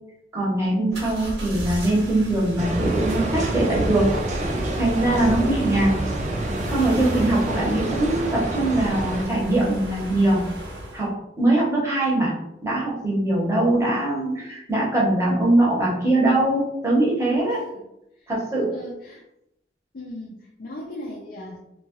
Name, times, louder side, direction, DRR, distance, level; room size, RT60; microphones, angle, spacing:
voice 1, 0.3-4.1 4.8-6.0 6.7-10.4 10.9-11.1 11.4-12.3 12.6-17.6 18.3-18.7, right 1 dB, 15° right, -5 dB, 0.8 m, -22 dB
sound 1, 0.9-11.1, equal, 80° right, 0.8 m, -34 dB
sound 2, 2.6-9.3, right 1 dB, 40° right, 0.4 m, -27 dB
voice 2, 5.7-6.2 17.5-17.7 18.2-18.3 18.7-19.2 19.9-21.6, left 1 dB, 55° left, -3 dB, 0.4 m, -38 dB
2.7 x 2.2 x 2.9 m, 0.86 s
head